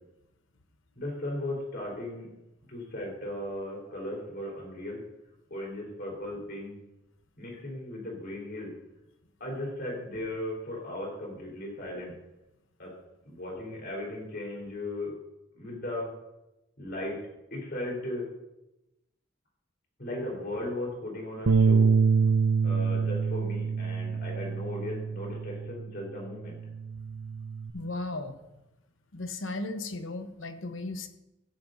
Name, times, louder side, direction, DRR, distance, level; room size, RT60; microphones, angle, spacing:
voice 1, 1.0-2.3 2.7-5.0 5.5-6.8 7.4-8.7 9.4-12.1 12.8-12.9 13.3-15.1 15.5-16.1 16.8-17.2 17.5-18.3 20.0-21.9 22.6-26.6, left 1 dB, 50° left, -2 dB, 3.9 m, -36 dB
Bass guitar, 21.5-25.9 26.3-27.7, right 5 dB, 80° right, 0.6 m, -26 dB
voice 2, 27.7-28.4 29.1-31.1, left 2 dB, 75° left, 8 dB, 1.0 m, -35 dB
15.0 x 12.0 x 2.7 m, 0.96 s
head